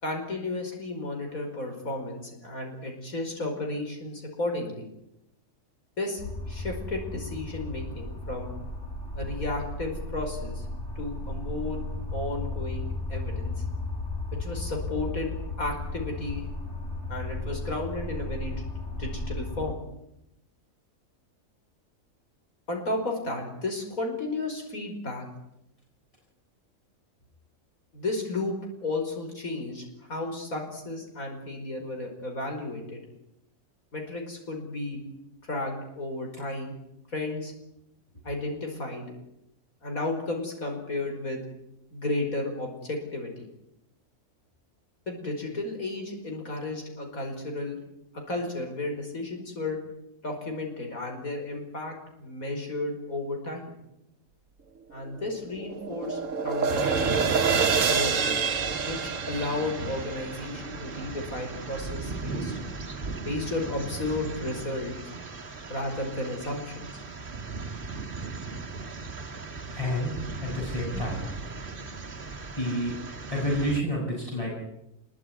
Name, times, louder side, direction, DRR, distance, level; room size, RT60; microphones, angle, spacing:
voice 1, 0.0-4.9 6.0-6.2 6.5-8.5 9.2-10.7 11.0-11.8 12.1-13.5 14.4-16.4 17.1-18.6 18.9-19.8 22.7-25.3 27.9-33.0 33.9-35.0 35.4-36.7 37.1-37.5 38.2-39.1 39.8-41.4 41.9-43.5 45.1-47.8 48.3-49.8 50.2-53.7 54.9-58.4 58.8-62.6 63.3-65.0 65.7-67.0 70.9-71.0, left 2 dB, 80° left, 3 dB, 5.7 m, -33 dB
sound 1, 6.2-19.7, left 2 dB, 55° left, 3.8 m, -35 dB
sound 2, 55.0-61.4, right 6 dB, 65° right, 1.6 m, -28 dB
sound 3, 56.7-73.8, right 3 dB, 40° right, 1.8 m, -37 dB
voice 2, 69.7-70.1 70.4-71.3 72.6-72.9 73.3-74.6, equal, 25° left, -4 dB, 7.4 m, -29 dB
26.5 x 22.5 x 9.7 m, 0.84 s
omnidirectional pair, 1.4 m